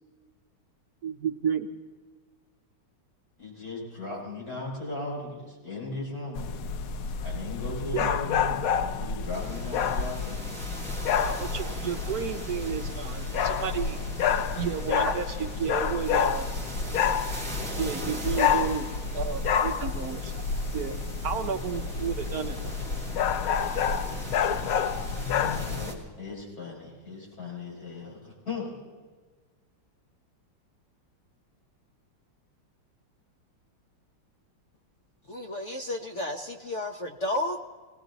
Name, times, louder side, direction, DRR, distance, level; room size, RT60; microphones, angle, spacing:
voice 1, 1.0-1.7 7.9-8.1 11.2-14.0 14.5-16.5 16.8-16.9 17.8-20.5 20.7-21.0 21.2-22.7, right 7 dB, 65° right, 5 dB, 1.0 m, -32 dB
voice 2, 3.4-6.5 7.2-10.4 25.3-28.8, left 3 dB, 40° left, -4 dB, 5.6 m, -37 dB
sound 1, 6.4-25.9, left 6 dB, 90° left, 0.7 m, -29 dB
sound 2, 9.3-25.9, right 1 dB, 10° right, 2.4 m, -42 dB
voice 3, 35.3-37.6, left 1 dB, 60° left, 3 dB, 0.7 m, -32 dB
20.0 x 18.0 x 4.0 m, 1.4 s
omnidirectional pair, 2.3 m